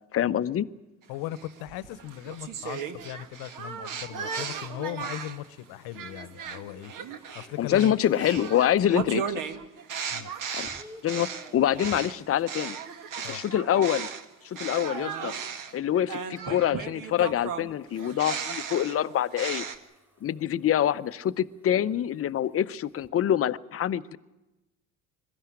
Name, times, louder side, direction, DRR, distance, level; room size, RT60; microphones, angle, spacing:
voice 1, 0.1-0.7 7.6-9.4 10.5-10.7 11.0-12.8 13.3-14.1 14.4-15.3 15.7-19.7 20.2-24.2, left 10 dB, 35° left, 14 dB, 0.7 m, -26 dB
voice 2, 1.1-6.9 7.3-8.0 10.1-10.3 13.2-13.4, left 14 dB, 60° left, 17 dB, 1.1 m, -38 dB
sound 1, 1.4-5.5 5.9-14.3 14.6-19.8, right 6 dB, 50° right, 1.6 m, -36 dB
sound 2, 4.8-8.9 9.4-9.8 10.1-12.2 14.7-23.1, left 1 dB, 5° right, 4.6 m, -53 dB
22.0 x 13.5 x 10.0 m, 1.0 s
hypercardioid pair, 65°, 40 cm